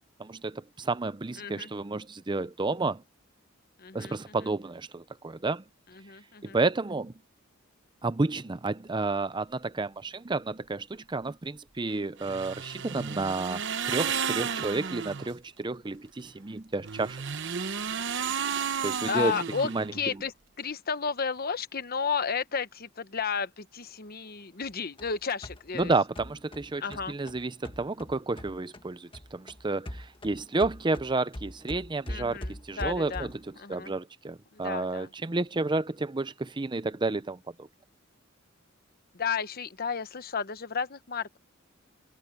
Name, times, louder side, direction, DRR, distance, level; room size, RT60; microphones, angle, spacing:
voice 1, 0.2-3.0 3.9-5.6 6.4-7.1 8.0-17.2 18.8-19.4 19.6-19.9 25.7-37.7, right 3 dB, 25° right, 0.6 m, -31 dB
voice 2, 1.4-1.7 3.8-4.4 5.9-6.6 19.1-20.3 20.6-25.9 26.8-27.2 32.1-33.3 33.6-33.9 34.5-35.1 39.1-41.4, left 6 dB, 50° left, 1.0 m, -33 dB
sound 1, 12.2-15.3 16.8-20.1, right 7 dB, 60° right, 1.0 m, -33 dB
sound 2, 24.6-28.9 29.1-33.5, left 1 dB, 25° left, 1.6 m, -42 dB
head